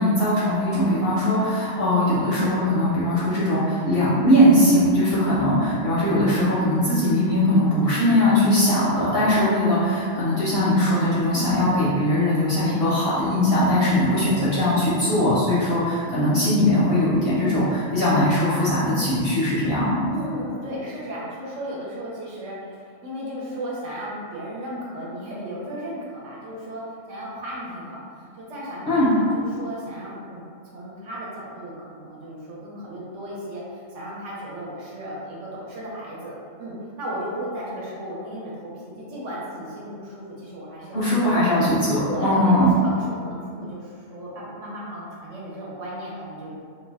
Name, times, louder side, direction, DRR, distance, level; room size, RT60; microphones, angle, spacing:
voice 1, 0.0-20.0 28.9-29.1 40.9-42.7, left 1 dB, 60° left, -8 dB, 0.7 m, -20 dB
voice 2, 20.1-26.8 27.1-41.3 42.0-46.6, equal, 70° right, -6 dB, 1.0 m, -35 dB
2.5 x 2.1 x 3.4 m, 2.2 s
omnidirectional pair, 1.4 m